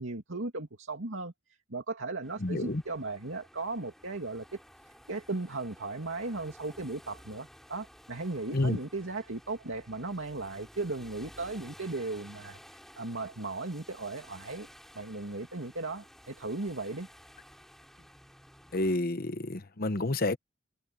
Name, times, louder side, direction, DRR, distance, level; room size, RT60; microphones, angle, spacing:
voice 1, 0.0-1.3 1.7-4.6 4.9-14.7 14.9-17.1, right 3 dB, 90° right, 2.4 m, -37 dB
sound 1, 2.2-19.0, equal, ahead, 4.0 m, -54 dB
voice 2, 2.4-2.8 8.5-8.8 18.7-20.4, left 2 dB, 50° left, 1.0 m, -29 dB
head